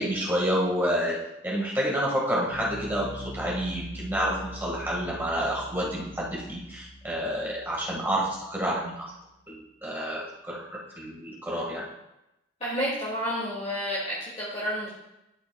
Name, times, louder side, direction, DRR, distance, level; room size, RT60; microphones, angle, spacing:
voice 1, 0.0-9.1 9.5-11.9, equal, 10° right, -4 dB, 1.6 m, -29 dB
Bass guitar, 2.5-9.0, equal, 65° left, 1.1 m, -43 dB
voice 2, 12.6-14.9, equal, 30° left, -8 dB, 2.2 m, -30 dB
11.5 x 5.9 x 2.3 m, 0.89 s
head